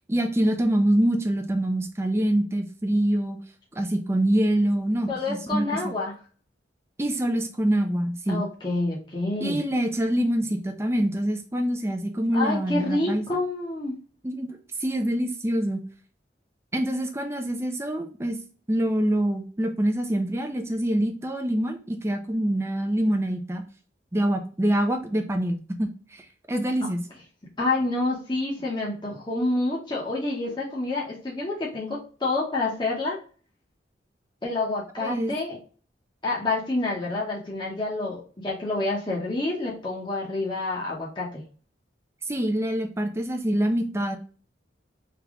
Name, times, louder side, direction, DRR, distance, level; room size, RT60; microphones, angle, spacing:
voice 1, 0.1-3.4 3.8-5.9 7.0-8.4 9.4-13.2 14.2-14.5 14.8-15.8 16.7-18.4 18.7-23.6 24.1-27.0 35.0-35.3 42.3-44.2, right 1 dB, 15° right, 5 dB, 0.5 m, -25 dB
voice 2, 5.1-6.1 8.3-9.6 12.3-14.0 26.8-26.9 27.6-33.2 34.4-35.6 36.2-41.4, left 2 dB, 25° left, -5 dB, 0.9 m, -28 dB
3.4 x 2.9 x 3.5 m, 0.40 s
head